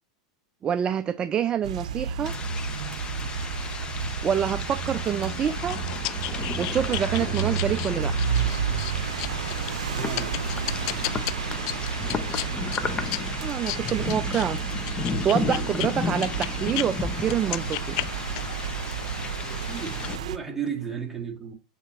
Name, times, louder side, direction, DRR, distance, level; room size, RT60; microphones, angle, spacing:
voice 1, 0.6-2.3 4.2-5.8 6.6-8.1 13.4-14.6 15.2-18.0, right 9 dB, 25° right, 0.4 m, -26 dB
sound 1, 1.6-20.4, right 7 dB, 75° right, 0.6 m, -31 dB
sound 2, 2.2-20.2, left 6 dB, 25° left, 0.7 m, -34 dB
sound 3, 5.0-16.9 17.2-18.6, left 17 dB, 55° left, 0.4 m, -35 dB
voice 2, 9.9-10.4 19.4-21.5, right 7 dB, 10° right, 2.0 m, -34 dB
8.0 x 4.3 x 3.1 m
hypercardioid pair, 105°, 4 cm